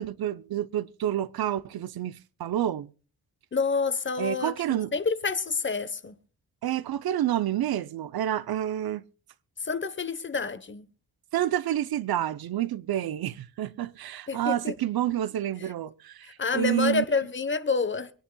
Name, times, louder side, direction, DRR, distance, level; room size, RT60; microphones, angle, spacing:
voice 1, 0.0-2.9 4.2-4.9 6.6-9.0 11.3-17.0, right 12 dB, 75° right, 0.8 m, -29 dB
voice 2, 3.5-6.1 9.6-10.9 14.3-14.7 16.2-18.1, left 4 dB, 30° left, 1.1 m, -28 dB
25.0 x 10.0 x 2.3 m
wide cardioid pair, 120°, 37 cm